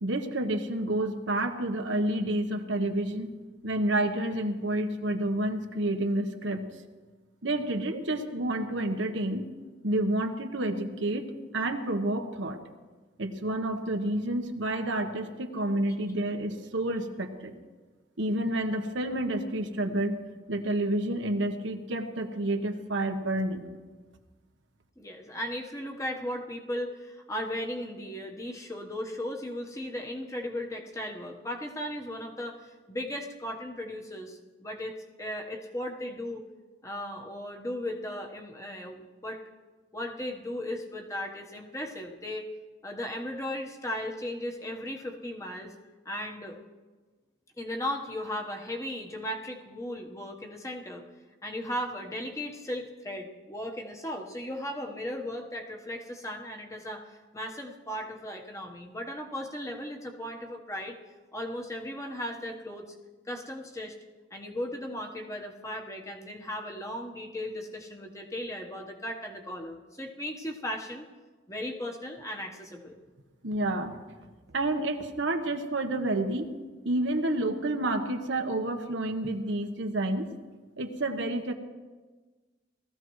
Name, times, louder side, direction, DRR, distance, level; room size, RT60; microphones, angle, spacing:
voice 1, 0.0-3.3 3.6-6.6 7.4-9.4 9.8-11.2 11.5-12.6 13.2-17.5 18.2-20.2 20.5-23.7 73.4-74.0 74.5-76.5 76.8-80.3 80.8-81.5, right 1 dB, 80° right, 5 dB, 1.1 m, -29 dB
voice 2, 25.0-36.4 36.8-39.4 39.9-42.5 42.8-45.7 46.0-46.6 47.6-51.1 51.4-61.0 61.3-62.9 63.2-64.0 64.3-71.1 71.5-73.0, left 1 dB, 15° left, 2 dB, 1.2 m, -36 dB
19.0 x 14.5 x 3.2 m, 1.3 s
head